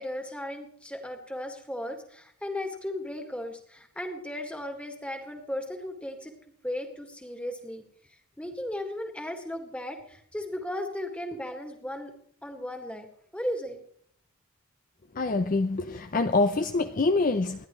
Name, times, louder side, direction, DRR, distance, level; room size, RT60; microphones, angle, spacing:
voice 1, 0.0-6.3 6.6-7.8 8.4-12.1 12.4-13.1 13.3-13.8, left 1 dB, 5° left, 4 dB, 1.8 m, -36 dB
voice 2, 15.1-17.7, left 3 dB, 40° left, 9 dB, 0.5 m, -25 dB
28.0 x 11.0 x 3.1 m, 0.65 s
head